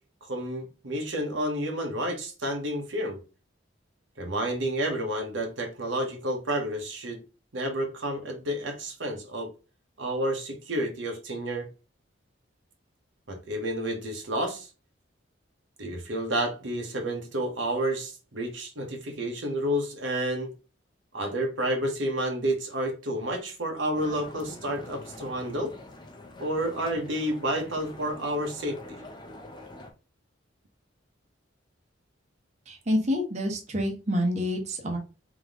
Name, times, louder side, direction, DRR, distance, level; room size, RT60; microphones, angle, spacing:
voice 1, 0.3-3.2 4.2-7.2 7.5-9.5 10.0-11.7 13.3-14.7 15.8-20.5 21.1-25.7 26.4-29.0, right 1 dB, 80° right, 1.1 m, -30 dB
sound 1, 23.9-29.9, left 1 dB, 25° left, 0.6 m, -45 dB
voice 2, 32.7-35.0, equal, 35° right, 0.9 m, -27 dB
3.6 x 3.0 x 3.5 m
head